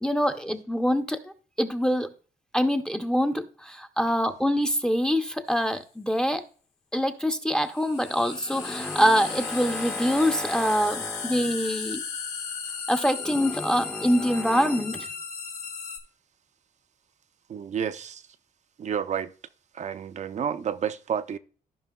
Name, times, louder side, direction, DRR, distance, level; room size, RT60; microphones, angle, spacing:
voice 1, 0.0-1.3 1.6-2.1 2.5-6.4 6.9-12.0 12.9-15.1, equal, 5° left, 0.5 m, -25 dB
sound 1, 5.5-5.6 7.6-16.0, left 6 dB, 90° left, 1.8 m, -36 dB
voice 2, 17.5-18.2 18.8-19.3 19.7-21.4, right 8 dB, 45° right, 0.4 m, -30 dB
15.0 x 5.4 x 2.2 m
cardioid pair, 110°, 16 cm